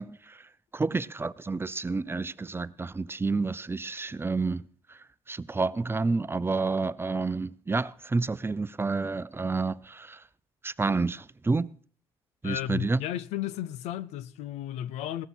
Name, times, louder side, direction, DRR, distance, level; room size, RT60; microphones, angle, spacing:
voice 1, 0.0-5.0 5.3-10.2 10.6-11.7 12.4-13.0, right 3 dB, 20° right, 0.6 m, -29 dB
voice 2, 12.4-15.3, left 12 dB, 90° left, 0.7 m, -34 dB
17.0 x 13.5 x 4.5 m
cardioid pair, 75°, 11 cm